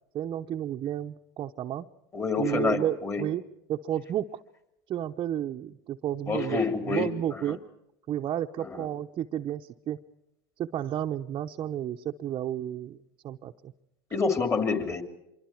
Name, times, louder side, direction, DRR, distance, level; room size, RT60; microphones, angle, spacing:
voice 1, 0.1-1.9 2.4-3.4 3.7-4.4 4.9-7.6 8.1-10.0 10.6-13.0 13.2-13.7, right 11 dB, 40° right, 2 dB, 0.8 m, -32 dB
voice 2, 2.1-3.2 6.3-7.4 8.6-8.8 14.1-15.0, left 4 dB, 25° left, 7 dB, 3.3 m, -28 dB
25.5 x 23.5 x 4.6 m, 0.85 s
supercardioid pair, 100°, 12 cm